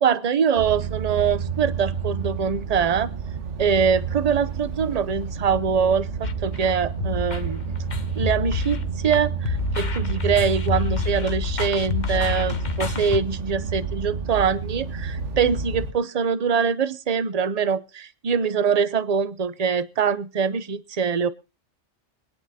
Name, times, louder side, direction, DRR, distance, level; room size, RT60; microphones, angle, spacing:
voice 1, 0.0-3.1 3.6-7.6 8.2-8.8 9.0-21.3, right 6 dB, 35° right, 16 dB, 0.8 m, -23 dB
sound 1, 0.6-15.9, right 6 dB, 75° right, 1.6 m, -30 dB
sound 2, 6.2-13.2, left 6 dB, 40° left, 1.1 m, -28 dB
25.0 x 10.0 x 2.8 m, 0.32 s
omnidirectional pair, 1.2 m